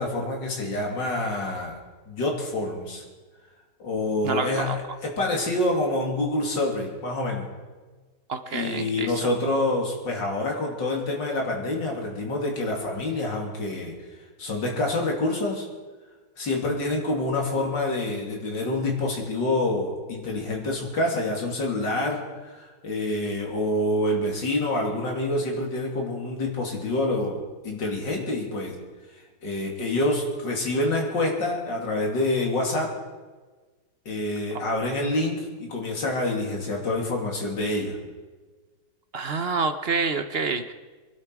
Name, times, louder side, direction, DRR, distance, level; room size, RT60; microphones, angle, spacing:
voice 1, 0.0-1.8 2.1-3.0 3.8-7.5 8.5-14.0 14.4-15.7 16.4-28.8 29.4-32.9 34.1-38.0, left 2 dB, 80° left, 0 dB, 3.4 m, -27 dB
voice 2, 4.2-4.8 8.3-9.3 39.1-40.7, right 4 dB, 50° right, 9 dB, 0.8 m, -28 dB
23.0 x 12.0 x 4.8 m, 1.3 s
omnidirectional pair, 1.9 m